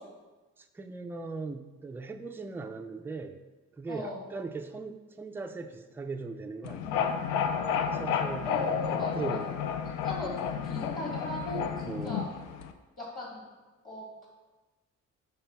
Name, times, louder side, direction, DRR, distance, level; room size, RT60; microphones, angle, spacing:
voice 1, 0.6-3.4 3.7-7.1 7.9-9.5 11.8-12.2, right 4 dB, 10° right, 6 dB, 0.3 m, -39 dB
voice 2, 3.9-4.2 8.5-9.5 9.8-12.2 13.0-13.4 13.8-14.3, left 1 dB, 30° left, -3 dB, 1.8 m, -38 dB
sound 1, 6.6-12.7, left 7 dB, 90° left, 0.5 m, -31 dB
5.8 x 3.4 x 5.5 m, 1.2 s
cardioid pair, 90°, 30 cm